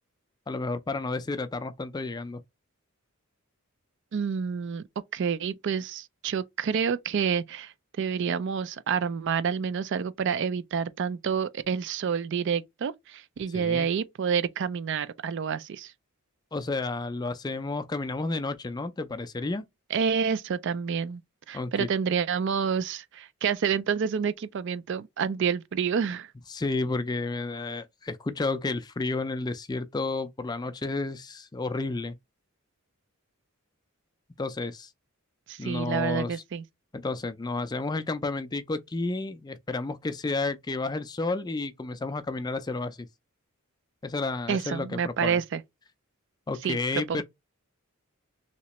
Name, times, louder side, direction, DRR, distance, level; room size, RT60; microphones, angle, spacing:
voice 1, 0.5-2.4 13.5-13.9 16.5-19.6 21.5-21.9 26.5-32.2 34.4-34.9 35.6-36.4 36.9-43.1 44.0-45.4 46.5-47.2, left 3 dB, 20° left, 0.3 m, -31 dB
voice 2, 4.1-4.8 5.1-15.9 19.9-21.2 21.5-26.3 35.5-36.6 44.5-45.6 46.6-47.2, right 6 dB, 55° right, 0.3 m, -28 dB
3.2 x 2.9 x 2.9 m
head